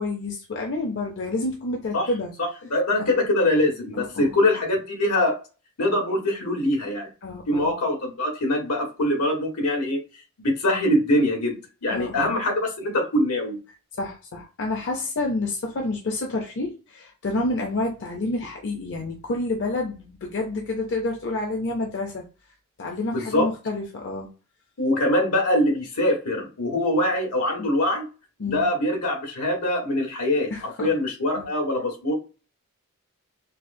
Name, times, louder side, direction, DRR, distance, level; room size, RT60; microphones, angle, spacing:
voice 1, 0.0-2.3 3.9-4.4 7.2-7.7 11.9-12.4 14.0-22.2 22.8-24.3 27.6-27.7 28.4-28.6 30.5-30.9 31.4-31.5, left 2 dB, 55° left, 1 dB, 0.7 m, -29 dB
voice 2, 2.7-5.4 5.8-7.1 7.5-10.0 10.4-13.6 23.1-23.5 24.8-28.0 28.4-32.1, left 1 dB, 85° left, 1 dB, 1.4 m, -23 dB
4.6 x 2.0 x 2.6 m, 0.33 s
head